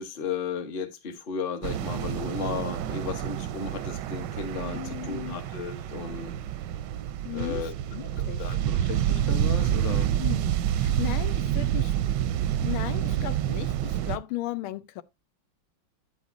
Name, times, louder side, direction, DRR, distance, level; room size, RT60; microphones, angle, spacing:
voice 1, 0.0-6.3 7.3-7.7 8.4-10.1, left 6 dB, 35° left, 0.9 m, -34 dB
sound 1, 1.6-14.2, right 11 dB, 75° right, 1.0 m, -28 dB
voice 2, 4.7-5.4 7.2-8.4 10.2-11.9 12.6-15.0, left 15 dB, 90° left, 1.5 m, -36 dB
8.7 x 8.2 x 2.5 m
omnidirectional pair, 2.2 m